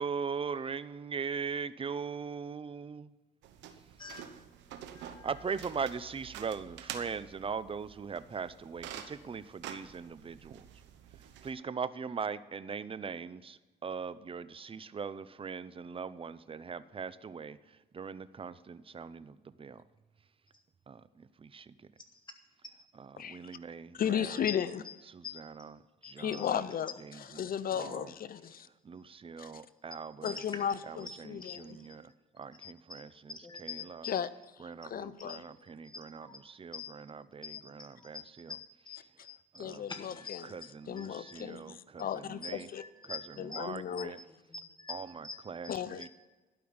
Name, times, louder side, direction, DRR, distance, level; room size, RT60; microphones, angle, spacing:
voice 1, 0.0-3.1 5.2-10.6 11.4-17.6 17.9-19.8 20.9-21.7 23.0-24.4 25.1-25.8 26.0-26.5 27.0-27.5 27.7-28.1 28.8-30.4 30.9-32.1 32.4-34.1 34.6-38.6 39.5-39.9 40.4-42.7 43.1-43.2 43.5-44.2 44.9-46.1, right 6 dB, 30° right, 15 dB, 0.6 m, -40 dB
sound 1, 3.4-11.5, right 9 dB, 90° right, 1.0 m, -48 dB
voice 2, 4.9-5.3 20.5-20.6 22.2-22.3 24.5-24.6 24.8-24.9 25.2-25.4 26.0-26.5 30.2-30.4 31.1-31.6 32.6-33.0 33.3-34.2 35.3-35.6 35.8-36.4 36.7-36.9 37.4-41.4 42.4-43.2 43.5-44.0 44.5-46.1, left 5 dB, 25° left, 4 dB, 1.9 m, -46 dB
voice 3, 23.9-24.8 26.2-28.7 29.4-29.6 30.2-31.8 34.1-34.3 34.6-35.4 39.6-40.5 40.9-42.8 43.4-44.1 45.7-46.1, left 9 dB, 55° left, 16 dB, 0.6 m, -35 dB
12.0 x 5.7 x 8.8 m, 1.2 s
cardioid pair, 80°, 18 cm